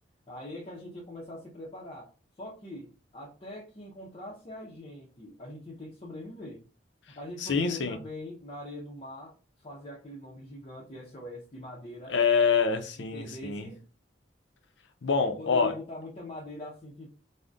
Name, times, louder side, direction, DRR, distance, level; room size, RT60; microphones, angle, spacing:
voice 1, 0.3-2.1 2.4-6.6 7.1-12.1 13.0-13.9 15.4-17.1, left 1 dB, 35° left, 0.6 m, -42 dB
voice 2, 7.4-8.0 12.1-13.7 15.0-15.7, left 5 dB, 75° left, 0.5 m, -26 dB
3.4 x 2.1 x 2.5 m
head